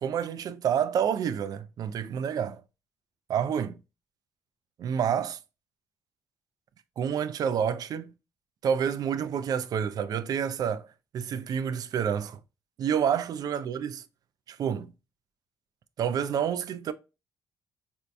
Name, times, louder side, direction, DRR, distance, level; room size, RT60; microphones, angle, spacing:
voice 1, 0.0-2.6 3.3-3.8 4.8-5.4 7.0-8.1 8.6-10.9 11.1-12.4 12.8-14.0 14.5-14.9 16.0-16.9, right 8 dB, 60° right, 0.3 m, -28 dB
4.3 x 2.6 x 2.2 m
supercardioid pair, 70°, 7 cm